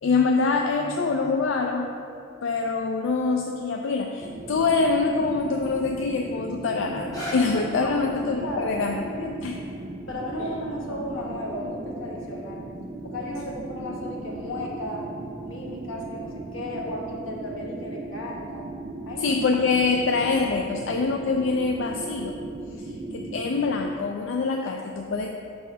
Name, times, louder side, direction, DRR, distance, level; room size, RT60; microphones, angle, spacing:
voice 1, 0.0-1.9 2.4-9.6 19.2-22.4 22.8-25.3, left 4 dB, 65° left, 2 dB, 0.3 m, -25 dB
sound 1, 4.2-23.9, right 2 dB, 30° right, 0.4 m, -37 dB
sound 2, 7.1-13.0 13.6-13.7, left 1 dB, 20° left, 1.0 m, -42 dB
voice 2, 8.3-8.7 10.1-12.6 13.0-15.1 15.4-18.7 19.1-19.3, left 1 dB, 90° left, -2 dB, 1.1 m, -35 dB
5.0 x 4.1 x 5.5 m, 2.6 s
head